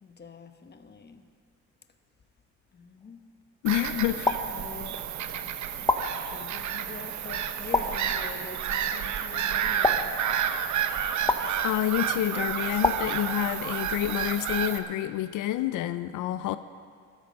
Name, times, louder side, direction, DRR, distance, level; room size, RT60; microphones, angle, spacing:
voice 1, 0.0-1.2 2.7-3.2 3.7-4.1 4.5-5.0 5.3-5.5 5.8-5.9 6.3-10.1, left 4 dB, 35° left, 8 dB, 1.1 m, -44 dB
voice 2, 3.6-4.3 11.6-16.6, left 13 dB, 90° left, 12 dB, 0.5 m, -28 dB
Bird vocalization bird call bird song / Gull seagull, 3.7-14.8, right 9 dB, 70° right, 0.9 m, -30 dB
sound 1, 4.2-5.2 5.9-6.7 7.7-8.6 9.8-10.7 11.3-12.1 12.8-13.8, left 2 dB, 15° left, 0.8 m, -30 dB
14.0 x 13.5 x 5.3 m, 2.1 s
cardioid pair, 90°, 30 cm